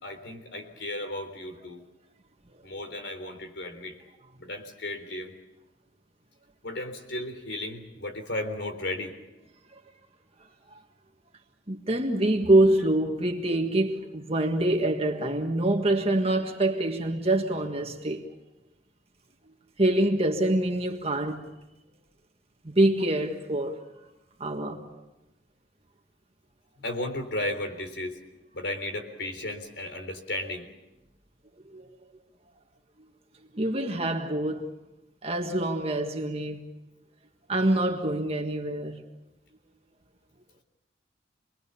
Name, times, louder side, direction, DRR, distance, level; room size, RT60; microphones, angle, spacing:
voice 1, 0.0-1.8 2.6-4.0 4.4-5.4 6.6-9.1 26.8-28.2 28.5-30.7, left 1 dB, 70° left, 3.8 m, -34 dB
voice 2, 11.7-18.3 19.8-21.5 22.6-23.8 24.4-25.0 31.7-31.9 33.5-34.7 35.2-36.6 37.5-39.0, right 1 dB, 35° right, 1.7 m, -25 dB
28.0 x 21.5 x 7.0 m
head